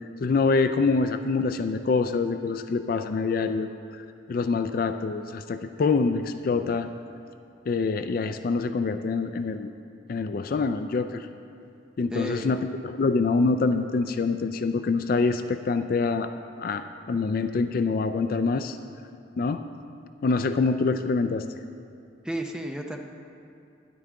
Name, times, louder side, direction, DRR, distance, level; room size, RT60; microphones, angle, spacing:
voice 1, 0.2-6.9 7.7-9.7 10.1-11.3 12.0-16.3 16.6-18.8 19.4-19.6 20.2-21.4, left 4 dB, 45° left, 9 dB, 0.3 m, -25 dB
voice 2, 12.1-12.5 17.1-17.3 22.2-23.0, right 1 dB, 5° right, 2 dB, 0.6 m, -32 dB
12.5 x 10.5 x 3.7 m, 2.5 s
head